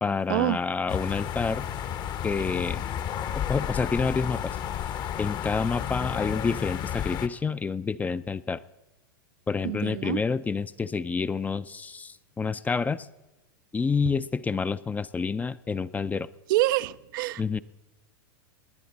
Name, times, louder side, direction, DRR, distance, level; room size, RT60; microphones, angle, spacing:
voice 1, 0.0-1.7 2.2-2.8 3.3-4.6 5.2-8.6 9.5-13.1 13.7-16.3 17.4-17.6, left 5 dB, 15° left, 16 dB, 0.4 m, -28 dB
sound 1, 0.9-7.3, left 9 dB, 35° left, 0.8 m, -32 dB
voice 2, 9.6-10.2 16.5-17.4, right 17 dB, 65° right, 16 dB, 0.4 m, -26 dB
20.5 x 10.0 x 4.1 m, 1.1 s
hypercardioid pair, 110°, 12 cm